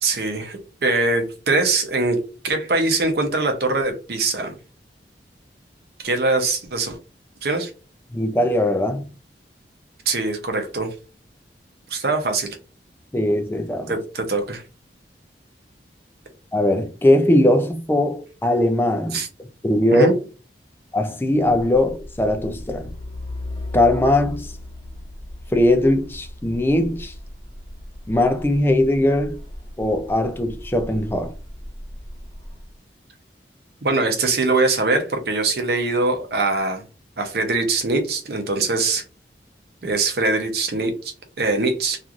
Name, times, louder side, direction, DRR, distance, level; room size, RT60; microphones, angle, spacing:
voice 1, 0.0-4.5 6.0-7.0 7.4-7.7 10.1-10.9 11.9-12.6 13.9-14.6 19.1-19.3 19.9-20.1 33.8-36.8 37.2-39.0 39.8-42.0, right 3 dB, 60° right, 0.7 m, -22 dB
voice 2, 8.1-9.1 13.1-13.9 16.5-19.2 19.6-20.1 20.9-22.9 23.7-24.5 25.5-27.1 28.1-29.4 29.8-31.3, left 1 dB, 10° left, 0.3 m, -20 dB
Truck, 21.6-32.7, left 1 dB, 30° left, 0.9 m, -37 dB
3.0 x 2.5 x 2.4 m
head